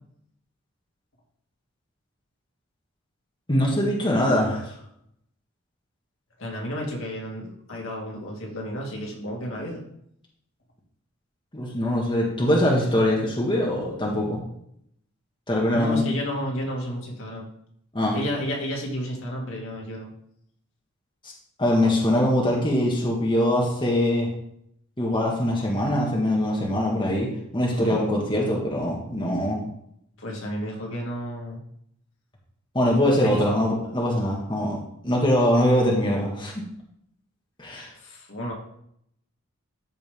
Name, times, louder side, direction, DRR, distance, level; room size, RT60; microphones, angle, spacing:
voice 1, 3.5-4.7 11.5-14.4 15.5-16.1 17.9-18.2 21.6-24.3 25.0-29.6 32.7-34.8 35.0-36.7 37.6-37.9, left 1 dB, 25° left, -3 dB, 1.9 m, -23 dB
voice 2, 6.4-9.8 15.7-17.5 18.1-20.1 27.7-28.0 30.2-31.6 33.3-33.5 37.9-38.5, equal, 65° left, -2 dB, 2.4 m, -32 dB
13.5 x 5.2 x 3.7 m, 0.71 s
head